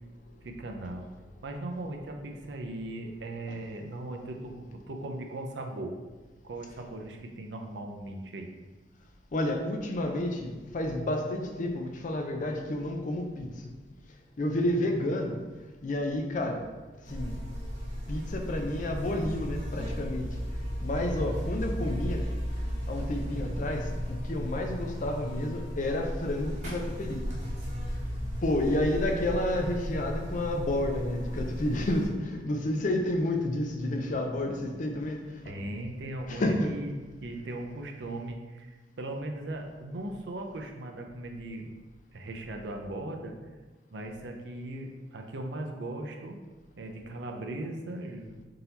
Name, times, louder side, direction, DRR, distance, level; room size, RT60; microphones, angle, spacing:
voice 1, 0.4-1.1 1.4-5.9 6.4-8.5 21.2-21.3 35.4-36.9 37.2-41.7 42.1-43.3 43.9-46.3 46.8-48.4, right 1 dB, 70° right, 3 dB, 0.5 m, -38 dB
voice 2, 9.3-13.7 14.4-15.4 15.6-16.7 17.1-17.4 18.1-20.4 20.8-22.3 22.9-27.2 28.4-35.4 36.3-36.8, left 1 dB, 45° left, 4 dB, 0.5 m, -30 dB
Buzz, 17.0-32.1, equal, 40° right, 1.1 m, -35 dB
3.9 x 2.8 x 3.9 m, 1.3 s
head